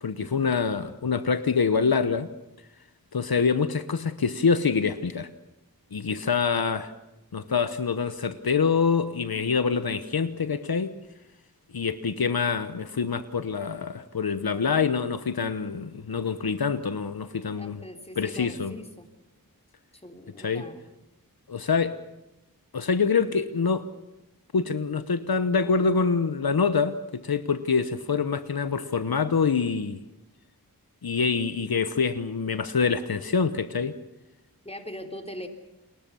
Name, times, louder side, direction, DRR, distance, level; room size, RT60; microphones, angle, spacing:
voice 1, 0.0-2.3 3.1-5.3 5.9-6.9 7.3-10.9 11.7-17.8 18.2-18.8 20.4-20.6 21.5-22.0 22.7-23.9 24.5-30.0 31.0-33.9, left 5 dB, 75° left, 11 dB, 1.0 m, -25 dB
voice 2, 17.6-19.1 20.0-20.8 34.7-35.5, left 1 dB, 15° left, 4 dB, 3.6 m, -41 dB
29.5 x 21.5 x 7.0 m, 0.94 s
wide cardioid pair, 50°, 36 cm